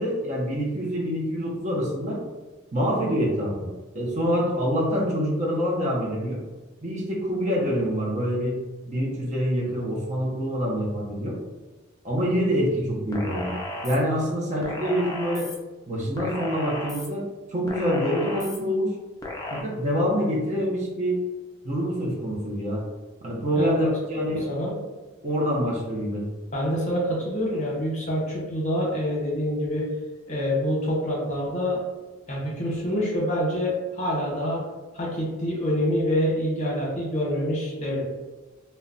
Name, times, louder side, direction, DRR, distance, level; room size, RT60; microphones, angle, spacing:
voice 1, 0.0-2.2 2.7-3.7 3.9-6.4 6.8-8.6 8.9-11.4 12.0-13.5 13.8-15.5 15.9-17.2 17.5-18.9 19.5-21.2 21.6-22.8 23.2-24.3 25.2-26.3, equal, 35° right, -3 dB, 0.6 m, -26 dB
sound 1, 13.1-14.0 14.6-15.6 16.2-17.1 17.7-18.6 19.2-19.6, left 1 dB, 15° left, 0.4 m, -34 dB
voice 2, 23.5-24.7 26.5-29.9 30.3-31.8 32.3-34.6 34.9-38.1, equal, 35° left, -4 dB, 0.8 m, -26 dB
2.2 x 2.1 x 3.7 m, 1.2 s
head